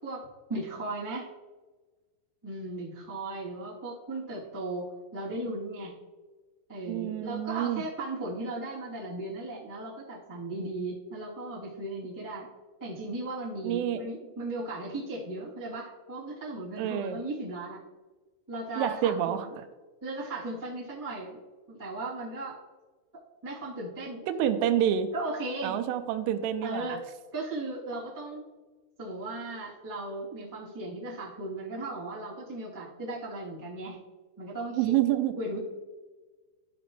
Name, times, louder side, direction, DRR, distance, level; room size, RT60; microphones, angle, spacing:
voice 1, 0.0-1.3 2.4-4.8 5.1-5.9 6.7-12.5 12.8-17.8 18.5-19.5 20.0-21.4 21.7-22.6 23.4-24.2 25.1-25.8 26.6-28.4 29.0-34.0 34.4-35.0 35.4-35.6, right 2 dB, 10° right, -8 dB, 1.0 m, -36 dB
voice 2, 6.9-7.8 13.6-14.0 16.8-17.2 18.8-19.7 24.3-25.1 25.6-27.0 34.8-35.3, right 11 dB, 85° right, 9 dB, 3.2 m, -28 dB
14.5 x 5.1 x 3.2 m, 1.3 s
omnidirectional pair, 5.7 m